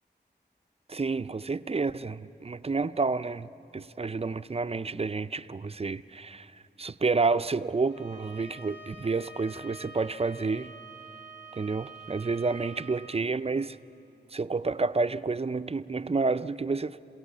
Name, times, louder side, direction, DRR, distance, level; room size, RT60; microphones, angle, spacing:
voice 1, 0.9-6.5 6.8-10.7 11.5-13.8 14.3-17.0, right 4 dB, 35° right, 0.4 m, -29 dB
Bowed string instrument, 7.9-13.2, right 3 dB, 80° left, 1.6 m, -47 dB
27.0 x 17.0 x 7.2 m
wide cardioid pair, 70°, 18 cm